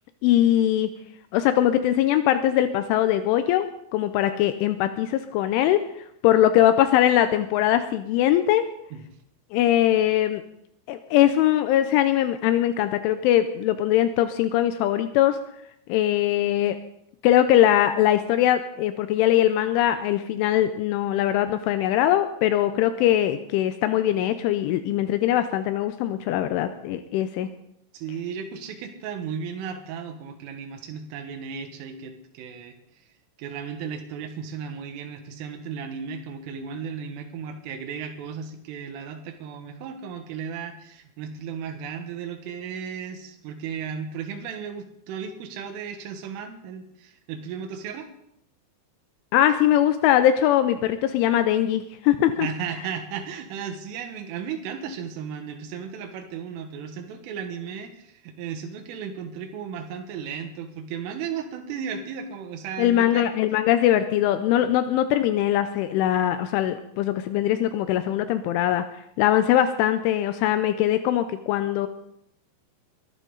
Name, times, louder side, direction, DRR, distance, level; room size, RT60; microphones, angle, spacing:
voice 1, 0.2-0.9 1.3-3.7 3.9-5.8 6.2-8.6 9.5-10.4 10.9-15.4 15.9-16.8 17.2-27.5 49.3-52.5 62.8-68.8 69.2-71.9, left 12 dB, 80° left, 10 dB, 3.1 m, -21 dB
voice 2, 27.9-32.8 33.4-48.1 52.4-63.3, right 7 dB, 85° right, 5 dB, 4.0 m, -35 dB
22.5 x 12.0 x 4.0 m, 0.74 s
omnidirectional pair, 5.6 m